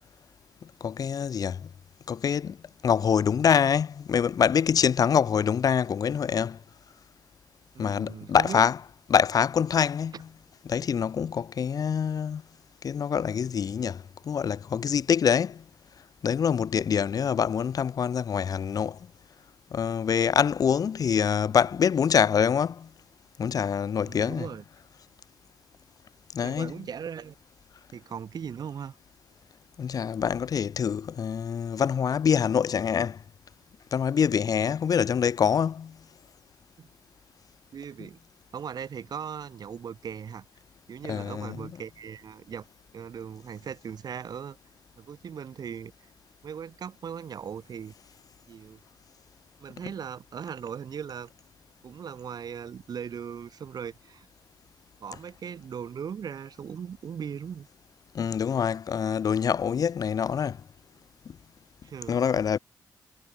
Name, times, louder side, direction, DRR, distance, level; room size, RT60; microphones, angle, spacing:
voice 1, 0.8-1.7 2.1-2.6 2.8-6.6 7.8-8.8 9.1-10.1 10.7-12.4 12.8-15.6 16.2-19.0 19.7-22.9 23.4-24.5 26.3-26.8 29.8-33.2 33.9-36.0 41.0-41.7 58.1-60.6 62.1-62.6, left 7 dB, 55° left, 0.5 m, -25 dB
voice 2, 7.7-8.6 10.1-10.2 24.0-24.6 26.4-27.3 27.9-29.0 36.8-36.9 37.7-38.2 38.5-40.4 40.9-42.6 42.9-44.6 45.0-45.9 46.4-47.9 48.5-48.8 49.6-51.3 51.8-54.3 55.0-57.7 61.8-62.2, right 7 dB, 60° right, 1.3 m, -38 dB
cardioid pair, 80°, 8 cm